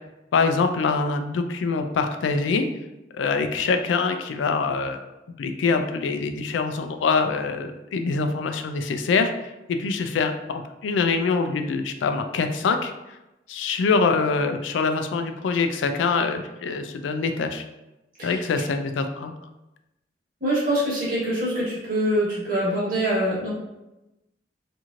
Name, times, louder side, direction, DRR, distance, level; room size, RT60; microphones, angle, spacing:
voice 1, 0.3-2.7 3.1-5.0 5.4-9.3 9.7-12.9 13.5-17.6 18.2-19.3, left 4 dB, 90° left, 7 dB, 0.3 m, -24 dB
voice 2, 20.4-23.5, right 1 dB, 50° right, -7 dB, 1.2 m, -24 dB
2.9 x 2.6 x 2.4 m, 0.97 s
head